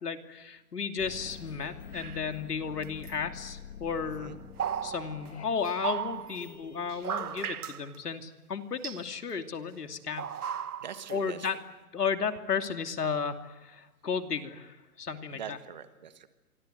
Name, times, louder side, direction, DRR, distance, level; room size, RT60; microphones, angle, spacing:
voice 1, 0.0-4.4 4.8-10.2 11.1-11.6 11.9-15.6, left 6 dB, 80° left, 7 dB, 2.9 m, -34 dB
sound 1, 1.0-7.5, left 7 dB, 45° left, 2.7 m, -47 dB
sound 2, 1.9-2.3 2.8-3.1 4.1-6.6 6.9-8.0 8.8-9.0 10.2-11.1 11.4-11.6, right 8 dB, 70° right, 1.3 m, -36 dB
voice 2, 10.8-11.5 15.3-16.3, right 8 dB, 30° right, 11 dB, 1.4 m, -42 dB
28.0 x 24.5 x 7.9 m, 1.1 s
hypercardioid pair, 170°, 46 cm